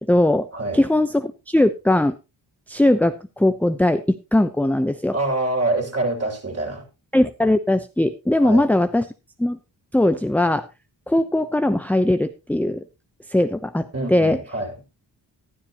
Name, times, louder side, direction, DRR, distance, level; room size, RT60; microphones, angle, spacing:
voice 1, 0.0-0.5 0.7-2.1 2.7-5.2 7.1-9.1 9.4-9.6 9.9-10.7 11.1-12.8 13.3-14.4, left 1 dB, 5° left, 0.7 m, -20 dB
voice 2, 5.1-6.9 8.4-8.7 13.9-14.7, right 2 dB, 35° right, 6.3 m, -25 dB
14.0 x 12.0 x 2.9 m
cardioid pair, 55°, 43 cm